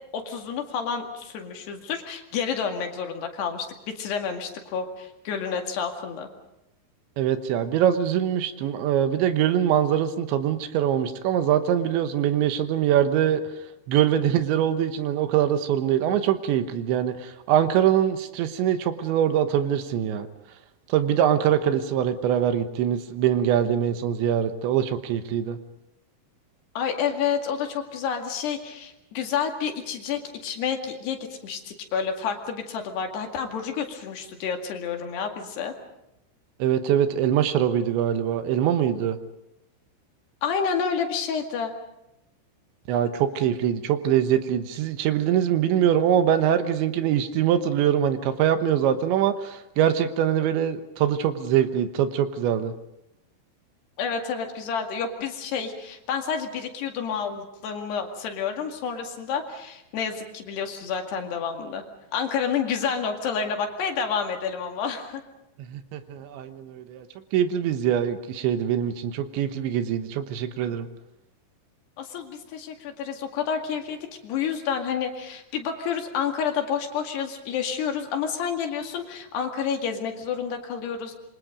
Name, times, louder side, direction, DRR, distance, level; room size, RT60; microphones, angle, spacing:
voice 1, 0.1-3.7 4.0-6.3 26.8-31.2 31.4-35.7 40.4-41.7 54.0-61.8 62.1-65.2 72.0-74.0 74.2-81.2, left 6 dB, 65° left, 4 dB, 4.1 m, -29 dB
voice 2, 7.2-13.4 13.9-20.3 20.9-25.6 36.6-39.2 42.9-52.7 65.6-67.1 67.3-70.9, right 10 dB, 80° right, 10 dB, 3.4 m, -23 dB
27.0 x 25.0 x 5.2 m, 0.86 s
omnidirectional pair, 5.4 m